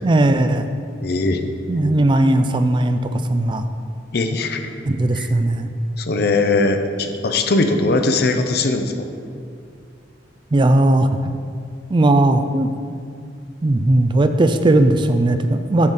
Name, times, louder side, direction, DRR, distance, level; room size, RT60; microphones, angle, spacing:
voice 1, 0.0-0.7 1.7-3.7 4.8-5.7 10.5-11.3 11.9-12.7 13.6-15.9, right 1 dB, 25° right, 9 dB, 0.4 m, -17 dB
voice 2, 1.0-1.4 4.1-4.6 5.2-5.3 6.0-9.1, left 3 dB, 60° left, 6 dB, 0.7 m, -20 dB
8.5 x 4.1 x 6.4 m, 2.3 s
head